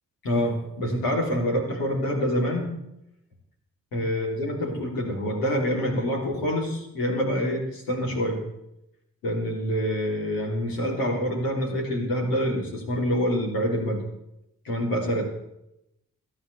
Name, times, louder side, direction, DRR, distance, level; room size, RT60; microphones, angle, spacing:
voice 1, 0.2-2.7 3.9-8.4 9.2-14.0 14.6-15.2, equal, 90° left, -1 dB, 3.2 m, -26 dB
28.5 x 9.9 x 3.4 m, 0.84 s
supercardioid pair, 45°, 34 cm